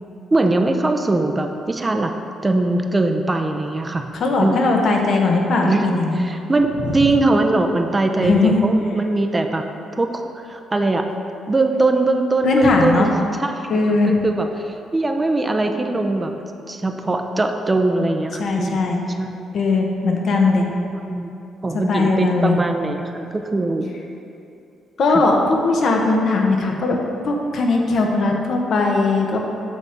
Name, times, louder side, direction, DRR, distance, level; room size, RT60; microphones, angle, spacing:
voice 1, 0.3-2.1 2.4-4.1 4.4-4.6 5.6-9.7 9.9-11.1 11.5-13.1 13.4-16.3 16.7-18.8 19.2-19.3 20.9-21.4 21.6-23.9 25.1-25.2, right 2 dB, 20° right, 5 dB, 0.6 m, -21 dB
voice 2, 4.1-6.2 6.8-6.9 8.2-8.6 12.4-13.1 13.7-14.1 18.4-19.0 19.5-20.7 21.7-22.6 25.0-27.0 27.2-29.4, left 3 dB, 60° left, 1 dB, 1.0 m, -19 dB
8.3 x 3.6 x 6.7 m, 2.7 s
cardioid pair, 90°, 0 cm